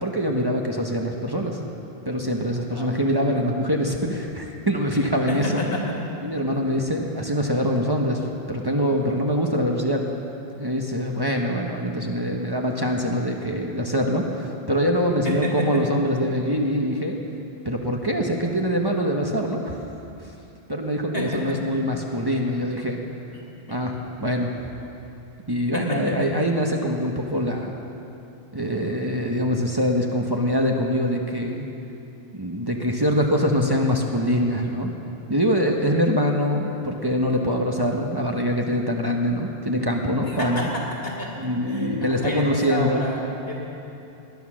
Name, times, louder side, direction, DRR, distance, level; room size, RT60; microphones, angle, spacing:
voice 1, 0.0-1.6 2.0-5.6 6.2-10.1 10.6-17.2 17.6-19.8 20.7-23.0 23.7-24.5 25.5-27.7 28.5-31.6 32.3-34.9 35.3-40.7 41.4-43.0, equal, 25° right, 0 dB, 1.1 m, -24 dB
voice 2, 5.3-6.0 15.2-15.7 21.1-21.6 23.7-23.8 25.7-26.3 40.2-41.3 41.6-41.9 42.2-43.5, left 1 dB, 70° left, -3 dB, 2.9 m, -29 dB
19.0 x 10.5 x 6.3 m, 2.8 s
omnidirectional pair, 1.0 m